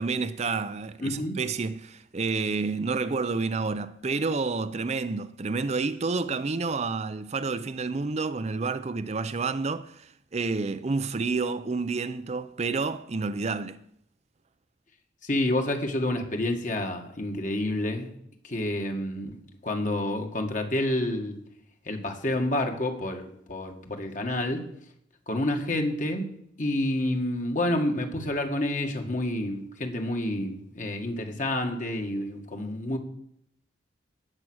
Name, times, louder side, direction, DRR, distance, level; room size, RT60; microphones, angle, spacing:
voice 1, 0.0-13.8, right 4 dB, 35° right, 0.5 m, -29 dB
voice 2, 1.0-1.4 15.2-18.1 18.4-19.3 19.6-21.4 21.9-24.6 25.3-26.3 26.6-33.0, left 1 dB, 45° left, 2.0 m, -29 dB
18.5 x 7.5 x 6.3 m
head